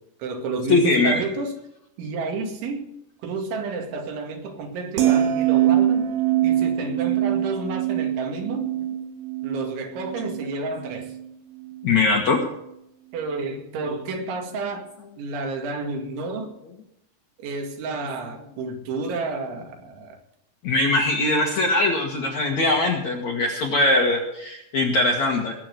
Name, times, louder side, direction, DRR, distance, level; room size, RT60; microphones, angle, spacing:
voice 1, 0.0-1.5 2.0-2.9 3.2-6.2 6.4-8.7 9.4-11.1 13.1-14.8 15.2-16.5 17.4-20.2, right 3 dB, 80° right, 4 dB, 4.4 m, -30 dB
voice 2, 0.7-1.2 11.8-12.4 20.6-25.6, left 2 dB, 55° left, 1 dB, 2.0 m, -21 dB
sound 1, 5.0-11.3 11.6-11.9, right 12 dB, 65° right, 3.2 m, -23 dB
19.5 x 7.7 x 6.5 m, 0.79 s
omnidirectional pair, 5.3 m